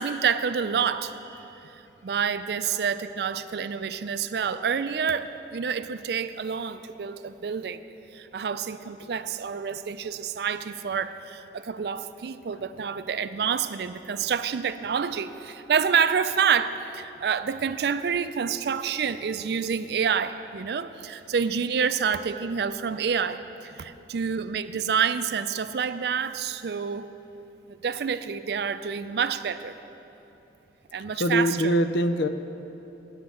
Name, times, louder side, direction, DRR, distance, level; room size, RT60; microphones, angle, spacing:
voice 1, 0.0-1.7 2.0-7.8 8.1-27.1 27.8-29.8 30.9-31.7, right 6 dB, 60° right, 12 dB, 0.4 m, -28 dB
voice 2, 31.2-32.3, equal, 75° left, 10 dB, 0.5 m, -23 dB
9.5 x 8.2 x 7.6 m, 3.0 s
head